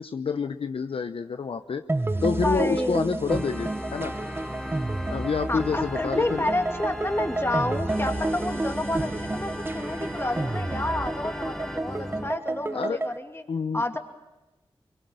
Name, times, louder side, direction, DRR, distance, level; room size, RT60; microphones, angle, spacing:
voice 1, 0.0-1.8 2.2-4.1 5.1-6.5 12.7-13.0 13.5-13.8, left 5 dB, 75° left, 8 dB, 0.8 m, -28 dB
sound 1, 1.9-13.2, right 2 dB, 25° right, 0.9 m, -30 dB
voice 2, 2.4-3.2 5.5-13.4 13.7-14.0, left 2 dB, 25° left, 4 dB, 2.6 m, -30 dB
Organ, 3.3-12.4, equal, 5° left, 1.4 m, -36 dB
24.0 x 23.0 x 7.8 m, 1.0 s
cardioid pair, 55°, 10 cm